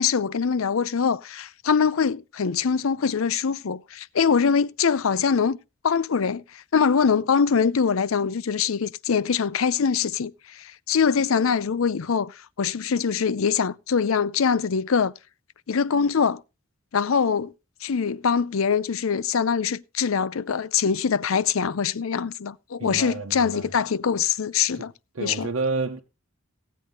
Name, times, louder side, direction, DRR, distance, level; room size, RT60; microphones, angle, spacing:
voice 1, 0.0-5.6 5.8-15.1 15.7-16.4 16.9-17.5 17.8-24.9 25.2-25.5, left 6 dB, 85° left, 0.5 m, -23 dB
voice 2, 22.8-23.7 24.7-24.8 25.1-26.0, right 3 dB, 85° right, 1.0 m, -29 dB
16.5 x 8.4 x 3.8 m
head